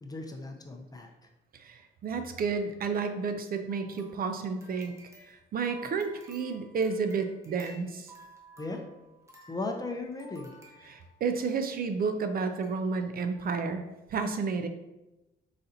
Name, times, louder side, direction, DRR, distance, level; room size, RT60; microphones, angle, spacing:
voice 1, 0.0-1.1 8.6-8.9 9.5-10.5, left 2 dB, 20° left, 3 dB, 0.5 m, -36 dB
voice 2, 1.5-4.9 5.3-8.1 10.9-13.8 14.1-14.7, right 5 dB, 50° right, 8 dB, 0.4 m, -31 dB
sound 1, 3.7-11.4 12.1-12.2 12.6-12.8 13.1-13.2, right 2 dB, 15° right, 1.0 m, -54 dB
4.0 x 4.0 x 2.6 m, 1.0 s
cardioid pair, 90°, 20 cm